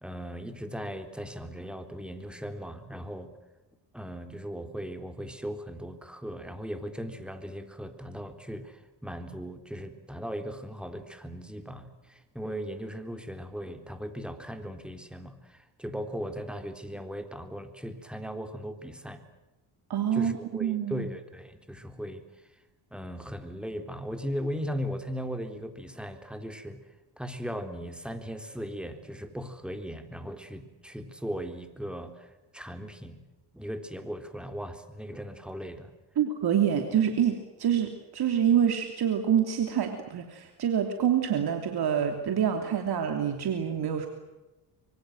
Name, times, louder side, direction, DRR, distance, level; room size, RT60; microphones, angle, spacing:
voice 1, 0.0-3.3 3.9-19.2 20.1-22.2 22.9-26.8 27.2-33.2 33.5-35.9, equal, ahead, 7 dB, 3.7 m, -38 dB
voice 2, 19.9-21.1 36.1-44.1, right 9 dB, 60° right, 5 dB, 3.2 m, -26 dB
25.0 x 23.5 x 7.9 m, 1.1 s
cardioid pair, 90°, 43 cm